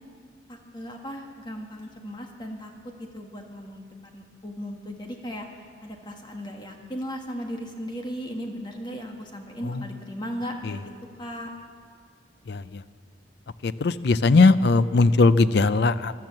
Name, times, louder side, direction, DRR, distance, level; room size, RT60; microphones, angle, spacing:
voice 1, 0.5-2.7 3.1-5.5 5.8-10.9 11.2-11.5, equal, 25° left, 2 dB, 1.5 m, -36 dB
voice 2, 12.5-12.8 13.6-16.1, left 3 dB, 60° left, 15 dB, 0.5 m, -19 dB
13.5 x 12.0 x 7.5 m, 2.2 s
head